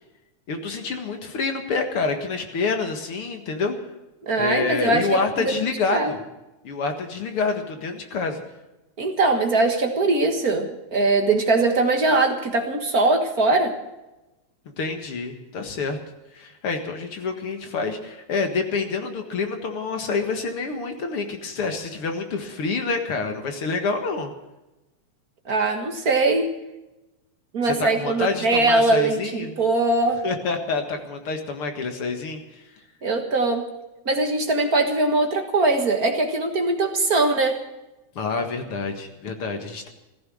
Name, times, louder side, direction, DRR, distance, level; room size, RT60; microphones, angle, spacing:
voice 1, 0.5-3.8 4.4-6.2 6.6-8.4 14.8-16.0 16.3-24.3 27.6-29.5 30.2-32.6 38.2-39.9, left 4 dB, 50° left, 5 dB, 2.4 m, -27 dB
voice 2, 4.2-5.5 5.9-6.1 9.0-13.7 25.5-26.5 27.5-30.2 33.0-33.6 34.0-37.6, right 2 dB, 40° right, 4 dB, 1.5 m, -21 dB
15.5 x 14.5 x 6.3 m, 0.99 s
omnidirectional pair, 3.3 m